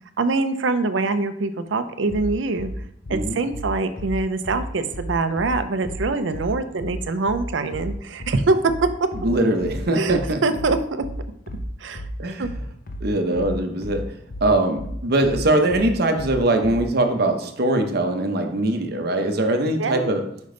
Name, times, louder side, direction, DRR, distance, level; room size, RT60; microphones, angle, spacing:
voice 1, 0.2-2.7 3.1-8.6 9.9-11.0 11.8-12.0 12.4-12.5 19.8-20.1, right 3 dB, 85° right, 10 dB, 0.6 m, -24 dB
sound 1, 2.1-16.9, equal, 50° left, 0.7 m, -32 dB
voice 2, 9.2-10.4 12.2-12.5 13.0-14.0 14.4-20.2, right 1 dB, 60° right, 5 dB, 0.9 m, -21 dB
5.3 x 5.1 x 3.8 m, 0.71 s
head